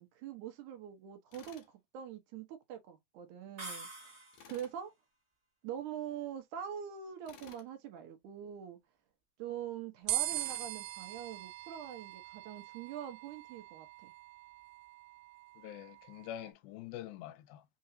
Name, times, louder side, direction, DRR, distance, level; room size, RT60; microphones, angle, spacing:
voice 1, 0.0-4.1 4.5-4.9 5.6-8.8 9.4-14.1, right 9 dB, 70° right, 2.2 m, -44 dB
Tools, 1.3-1.7 4.3-4.8 7.3-7.7 10.3-10.7, left 8 dB, 70° left, 2.1 m, -56 dB
sound 1, 3.6-4.7, right 2 dB, 25° right, 1.5 m, -46 dB
sound 2, 10.1-16.5, right 15 dB, 90° right, 2.6 m, -41 dB
voice 2, 15.6-17.6, left 12 dB, 85° left, 2.4 m, -45 dB
5.7 x 2.7 x 2.7 m
omnidirectional pair, 4.2 m